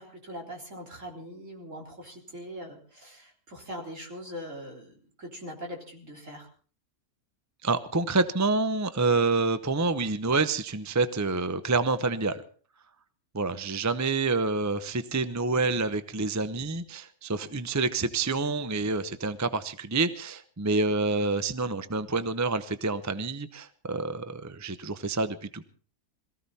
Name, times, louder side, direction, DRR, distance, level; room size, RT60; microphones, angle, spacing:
voice 1, 0.0-6.5, equal, 55° right, 0 dB, 4.3 m, -42 dB
voice 2, 7.6-12.4 13.3-25.7, right 3 dB, 20° right, 12 dB, 0.5 m, -28 dB
22.0 x 15.0 x 4.2 m, 0.43 s
omnidirectional pair, 1.6 m